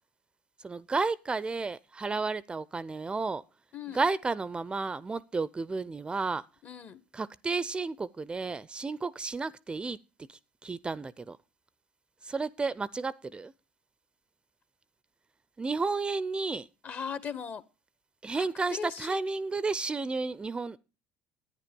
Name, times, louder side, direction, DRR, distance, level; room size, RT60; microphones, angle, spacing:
voice 1, 0.6-3.4 3.9-6.4 7.1-10.0 10.3-11.4 12.2-13.5 15.6-16.7 18.2-20.8, right 4 dB, 20° right, 0.5 m, -32 dB
voice 2, 6.6-7.0 16.8-17.6 18.3-19.2, left 7 dB, 45° left, 1.2 m, -39 dB
11.5 x 9.5 x 5.3 m
hypercardioid pair, 70°, 5 cm